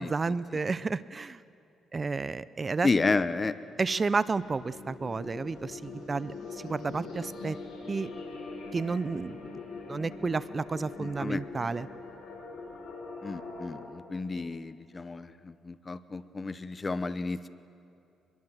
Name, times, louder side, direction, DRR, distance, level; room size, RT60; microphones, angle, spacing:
voice 1, 0.0-1.4 1.9-2.9 3.8-7.6 7.9-8.1 8.7-9.4 9.9-11.9, right 4 dB, 30° right, 17 dB, 0.5 m, -31 dB
voice 2, 2.8-3.6 11.0-11.4 13.2-17.5, left 3 dB, 30° left, 14 dB, 0.9 m, -31 dB
sound 1, 4.3-13.8, left 3 dB, 60° left, 7.1 m, -42 dB
24.5 x 21.5 x 7.8 m, 2.6 s
cardioid pair, 90°, 0 cm